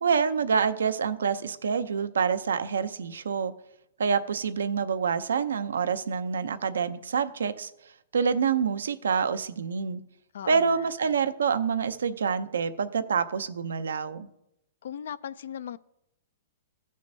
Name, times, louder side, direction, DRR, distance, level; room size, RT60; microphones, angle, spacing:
voice 1, 0.0-3.5 4.0-7.7 8.1-10.0 10.5-14.3, right 6 dB, 90° right, 0.6 m, -27 dB
voice 2, 10.3-10.9 14.8-15.8, left 9 dB, 75° left, 0.3 m, -38 dB
15.0 x 6.3 x 2.7 m
hypercardioid pair, 130°, 0 cm